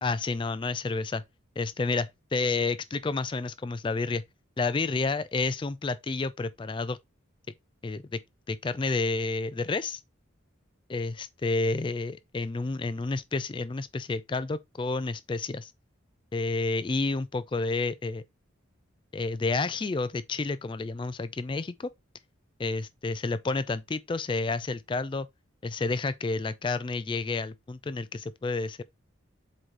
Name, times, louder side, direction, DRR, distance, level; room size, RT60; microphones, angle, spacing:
voice 1, 0.0-1.2 1.6-4.2 4.6-7.0 7.8-8.2 8.5-10.0 10.9-15.7 16.3-18.2 19.1-21.9 22.6-25.3 25.6-28.8, left 3 dB, 25° left, 0.3 m, -30 dB
7.7 x 3.9 x 3.2 m
head